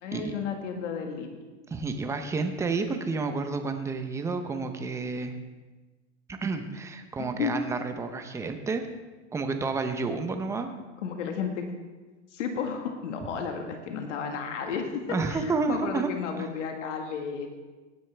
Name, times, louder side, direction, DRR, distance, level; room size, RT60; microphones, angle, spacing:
voice 1, 0.0-1.3 7.4-7.5 11.0-11.7 12.3-17.5, left 6 dB, 80° left, 3 dB, 1.7 m, -33 dB
voice 2, 1.7-5.3 6.3-8.8 9.3-10.7 15.1-16.1 16.4-16.5, right 4 dB, 10° right, 7 dB, 0.7 m, -30 dB
18.0 x 10.0 x 3.4 m, 1.3 s
supercardioid pair, 145°, 36 cm